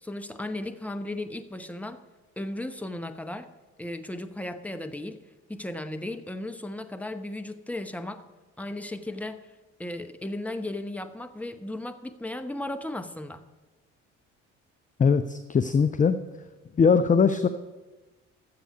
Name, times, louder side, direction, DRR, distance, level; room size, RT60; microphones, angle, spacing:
voice 1, 0.0-2.0 2.4-3.5 3.8-5.2 5.5-8.2 8.6-9.4 9.8-13.5, left 1 dB, 5° left, 8 dB, 0.9 m, -35 dB
voice 2, 15.0-16.2 16.8-17.5, left 5 dB, 20° left, 10 dB, 0.5 m, -21 dB
12.5 x 7.6 x 5.3 m, 1.2 s
hypercardioid pair, 50°, 38 cm